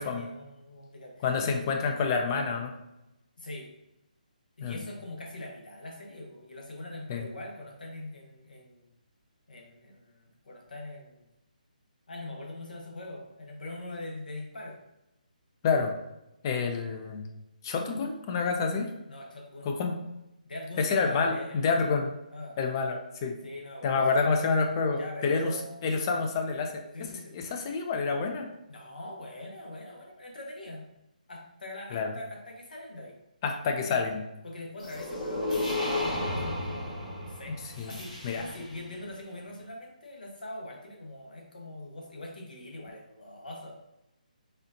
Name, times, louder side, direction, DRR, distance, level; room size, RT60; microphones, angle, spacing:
voice 1, 0.0-1.6 3.4-3.7 4.6-8.9 9.5-11.2 12.1-14.8 19.1-19.8 20.4-21.9 22.3-22.6 23.4-24.5 24.9-25.8 26.9-27.3 28.7-30.9 31.3-33.1 33.8-34.1 34.4-37.6 37.9-43.8, left 1 dB, 75° left, 0 dB, 1.0 m, -42 dB
voice 2, 1.2-2.7 4.6-4.8 7.1-7.3 15.6-15.9 16.4-17.2 17.6-18.9 19.6-20.0 20.8-22.1 22.6-23.3 23.8-25.5 25.8-26.7 27.0-28.5 31.9-32.1 33.4-34.2 37.8-37.9 38.2-38.5, left 4 dB, 30° left, 4 dB, 0.5 m, -28 dB
sound 1, 34.8-38.8, left 2 dB, 60° left, 1.4 m, -33 dB
4.2 x 2.4 x 2.6 m, 0.90 s
figure-of-eight pair, 155°, 5 cm